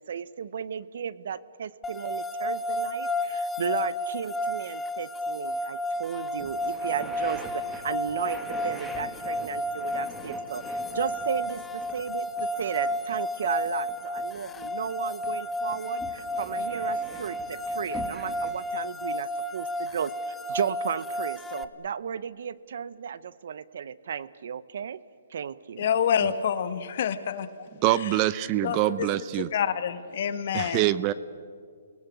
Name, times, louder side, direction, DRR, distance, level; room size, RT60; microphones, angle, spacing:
voice 1, 0.1-10.6 10.9-11.6 11.9-20.1 20.5-25.0 25.3-25.9, right 7 dB, 65° right, 17 dB, 0.8 m, -34 dB
sound 1, 1.8-21.6, left 1 dB, 10° left, 0.8 m, -32 dB
sound 2, 6.0-6.1 6.4-14.9 15.2-18.5, right 1 dB, 5° right, 2.1 m, -44 dB
voice 2, 25.8-27.5 28.0-28.1 28.6-29.1 29.5-30.8, left 8 dB, 55° left, 11 dB, 1.5 m, -27 dB
voice 3, 27.8-29.5 30.5-31.1, right 15 dB, 30° right, 16 dB, 0.7 m, -24 dB
29.0 x 19.5 x 8.4 m, 2.2 s
hypercardioid pair, 150°, 0 cm